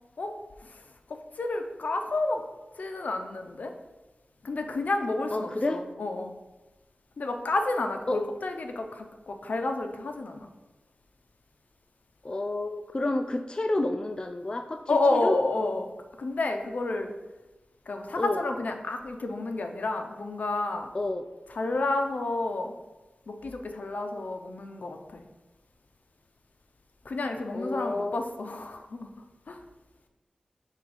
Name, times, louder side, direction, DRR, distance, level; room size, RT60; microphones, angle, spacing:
voice 1, 1.1-2.4 2.8-3.7 4.4-6.3 7.2-10.5 14.9-15.9 16.2-17.1 17.9-20.9 21.5-22.7 23.3-25.2 27.1-29.1 29.5-29.6, left 2 dB, 70° left, 5 dB, 0.6 m, -30 dB
voice 2, 5.3-5.8 8.1-8.2 12.2-15.4 18.2-18.4 20.9-21.3 27.5-28.2, left 2 dB, 30° left, 6 dB, 0.3 m, -30 dB
5.7 x 3.5 x 4.9 m, 1.1 s
wide cardioid pair, 70°, 3 cm